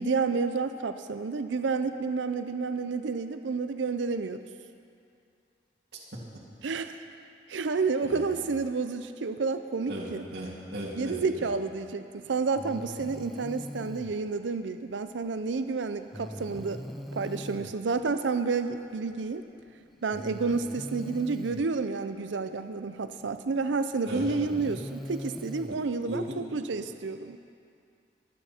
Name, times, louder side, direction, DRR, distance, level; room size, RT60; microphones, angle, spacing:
voice 1, 0.0-4.4 6.6-7.0 7.5-10.2 10.9-16.8 17.1-19.4 20.0-27.4, right 4 dB, 80° right, 9 dB, 0.5 m, -30 dB
voice 2, 9.9-11.2 24.1-24.3 26.0-26.3, equal, 60° right, -6 dB, 2.6 m, -36 dB
Breathing, 12.5-14.1 16.1-17.7 19.1-19.2 20.1-21.7 23.2-23.3 24.0-25.8, equal, ahead, 0.5 m, -41 dB
24.5 x 9.1 x 4.4 m, 2.4 s
head